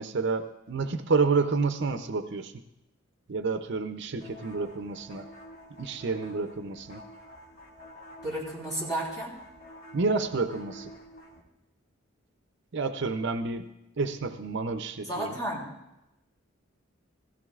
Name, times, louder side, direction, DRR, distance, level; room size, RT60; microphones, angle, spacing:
voice 1, 0.0-2.5 3.3-5.3 5.8-7.0 9.9-10.9 12.7-13.6 14.0-15.4, right 4 dB, 60° right, 9 dB, 0.6 m, -29 dB
sound 1, 4.2-11.4, equal, 65° left, 2.1 m, -49 dB
voice 2, 8.2-9.3 15.0-15.7, right 1 dB, 20° left, -4 dB, 3.3 m, -32 dB
16.5 x 15.5 x 2.4 m, 0.91 s
head